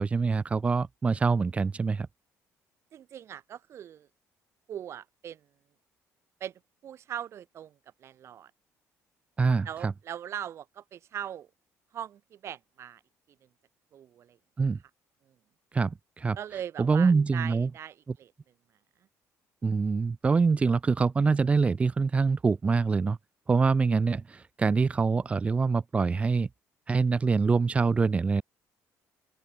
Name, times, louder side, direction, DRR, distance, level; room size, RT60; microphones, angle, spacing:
voice 1, 0.0-2.1 9.4-9.9 14.6-14.8 15.7-16.4 16.8-17.7 19.6-23.2 23.5-26.5 26.9-28.4, right 4 dB, 20° right, 0.6 m, -25 dB
voice 2, 2.9-4.1 4.7-5.5 6.4-8.5 9.7-11.5 11.9-13.0 13.9-14.4 15.3-15.4 16.4-18.3, right 10 dB, 50° right, 1.7 m, -40 dB
open air
cardioid pair, 135°, 6 cm